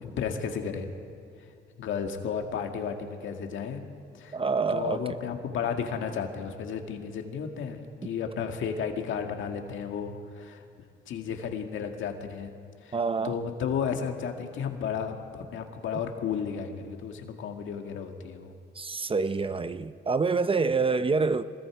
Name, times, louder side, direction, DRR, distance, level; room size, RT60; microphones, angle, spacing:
voice 1, 0.0-0.9 1.8-3.8 4.1-4.4 4.7-10.6 11.1-12.5 12.8-13.0 13.2-18.5, left 7 dB, 75° left, 2.0 m, -33 dB
voice 2, 4.3-5.2 12.9-13.3 18.8-21.4, right 4 dB, 25° right, 0.7 m, -27 dB
25.5 x 21.0 x 4.9 m
cardioid pair, 90°, 20 cm